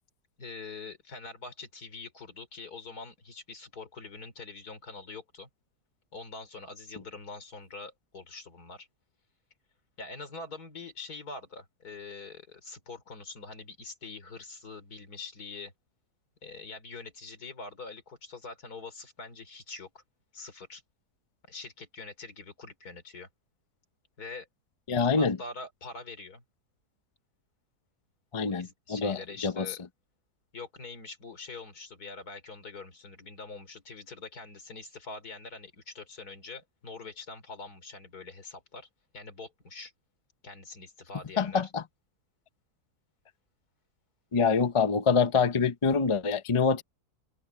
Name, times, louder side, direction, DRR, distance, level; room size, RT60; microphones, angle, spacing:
voice 1, 0.4-5.5 6.1-8.9 10.0-15.7 16.4-20.0 20.3-20.8 21.5-23.3 24.2-24.5 25.1-26.4 28.4-29.8 30.5-38.9 39.1-39.9 40.4-41.6, left 3 dB, 70° left, 3.8 m, -44 dB
voice 2, 24.9-25.4 28.3-29.7 41.4-41.8 44.3-46.8, left 5 dB, 30° left, 0.6 m, -25 dB
open air
omnidirectional pair, 1.7 m